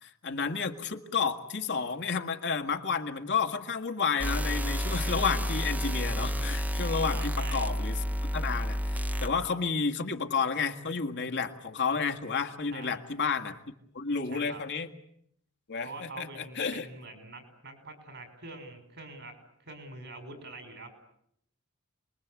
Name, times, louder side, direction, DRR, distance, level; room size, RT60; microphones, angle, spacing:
voice 1, 0.0-8.0 8.3-13.6 13.9-14.9 15.7-16.9, left 5 dB, 55° left, 5 dB, 2.0 m, -31 dB
sound 1, 4.2-9.3, equal, 5° right, 1.1 m, -30 dB
voice 2, 7.1-7.7 12.7-13.0 14.3-14.6 15.8-20.9, right 3 dB, 55° right, 7 dB, 5.9 m, -45 dB
28.5 x 21.5 x 8.4 m, 0.73 s
head